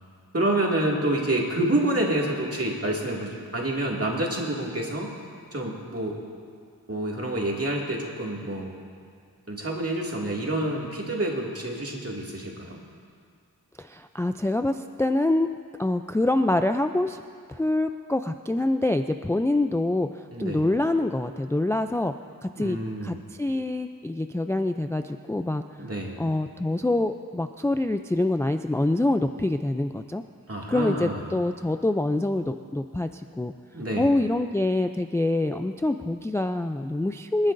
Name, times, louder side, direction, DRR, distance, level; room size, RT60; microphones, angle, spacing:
voice 1, 0.3-5.1 5.5-6.2 6.9-8.8 9.5-12.8 20.3-20.7 22.6-23.2 25.8-26.2 30.5-31.4 33.7-34.1, right 1 dB, 40° right, -2 dB, 2.3 m, -28 dB
voice 2, 13.8-15.5 15.8-17.2 17.5-22.1 22.4-25.9 26.2-30.2 30.7-33.5 34.0-37.5, left 2 dB, 10° left, 7 dB, 0.3 m, -25 dB
27.5 x 10.5 x 2.6 m, 2.1 s
wide cardioid pair, 55°, 35 cm